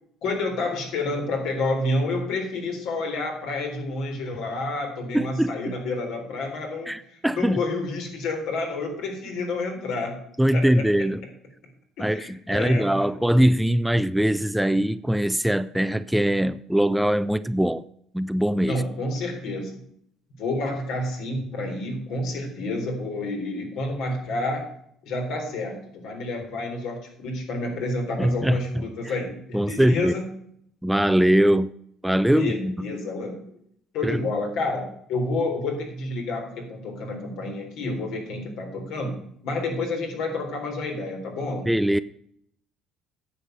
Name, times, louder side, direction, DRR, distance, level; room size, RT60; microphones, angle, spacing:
voice 1, 0.2-10.2 10.5-10.8 12.0-13.1 18.6-19.8 20.4-24.7 25.0-30.2 32.3-33.3 33.9-39.2 39.4-41.7, left 2 dB, 75° left, 2 dB, 3.8 m, -29 dB
voice 2, 5.1-5.7 6.9-7.6 10.4-11.2 12.0-17.8 18.1-18.8 28.2-28.6 29.0-29.2 29.5-30.1 30.8-31.7 32.0-32.7 34.0-34.2 41.7-42.0, equal, 5° right, 15 dB, 0.4 m, -22 dB
9.9 x 7.2 x 6.7 m, 0.69 s
cardioid pair, 110°, 0 cm